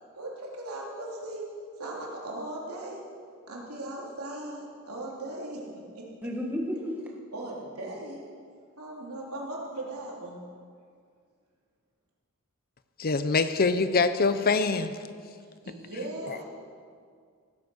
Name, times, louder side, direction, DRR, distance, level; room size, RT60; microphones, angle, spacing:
voice 1, 0.1-1.5 1.8-3.0 3.5-5.7 5.9-6.3 7.3-8.2 8.8-10.4 15.6-16.4, right 1 dB, 85° right, -3 dB, 3.4 m, -38 dB
voice 2, 6.2-6.9, equal, 10° right, 0 dB, 1.5 m, -31 dB
voice 3, 13.0-14.9 16.3-16.4, left 4 dB, 45° left, 11 dB, 0.7 m, -24 dB
16.0 x 9.8 x 6.4 m, 2.1 s
head